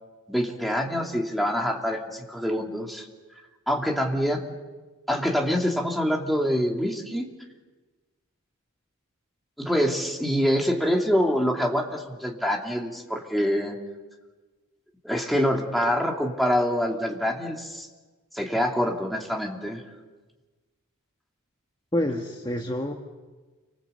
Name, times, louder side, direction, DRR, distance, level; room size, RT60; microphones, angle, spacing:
voice 1, 0.3-3.0 3.7-4.5 5.1-7.3 9.6-13.7 15.0-17.9 18.3-19.8, equal, ahead, 0 dB, 2.8 m, -25 dB
voice 2, 21.9-22.9, left 1 dB, 20° left, 2 dB, 1.4 m, -27 dB
29.0 x 25.5 x 8.2 m, 1.3 s
head